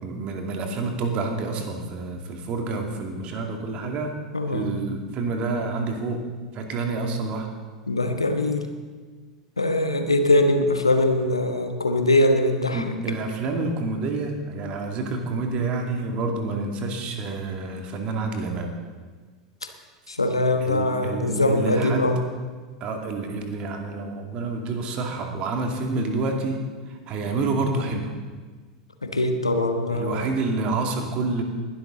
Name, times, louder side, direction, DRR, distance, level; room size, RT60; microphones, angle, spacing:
voice 1, 0.0-4.2 4.5-6.2 6.5-7.5 12.7-18.7 20.6-22.2 22.8-26.6 27.1-28.1 29.9-31.4, right 3 dB, 40° right, 3 dB, 2.4 m, -28 dB
voice 2, 4.3-4.7 7.9-8.7 9.6-12.8 20.1-22.3 29.0-30.3, left 1 dB, 85° left, 6 dB, 1.3 m, -22 dB
20.0 x 12.0 x 3.9 m, 1.4 s
figure-of-eight pair, 85°, 3 cm